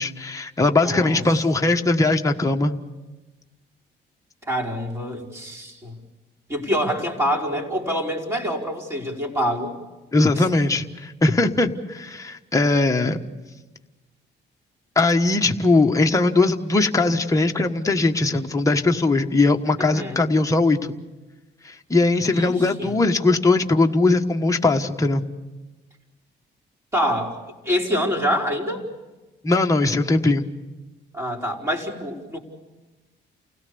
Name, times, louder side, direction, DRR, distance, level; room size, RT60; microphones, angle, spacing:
voice 1, 0.0-2.8 10.1-13.2 14.9-20.8 21.6-25.2 29.4-30.4, left 2 dB, 15° left, 3 dB, 1.3 m, -20 dB
voice 2, 0.8-1.2 4.5-6.0 6.5-9.7 10.3-10.5 19.8-20.2 22.3-23.0 26.9-28.8 31.1-32.4, equal, 15° right, -3 dB, 5.1 m, -26 dB
29.0 x 17.5 x 7.0 m, 1.2 s
cardioid pair, 90°, 20 cm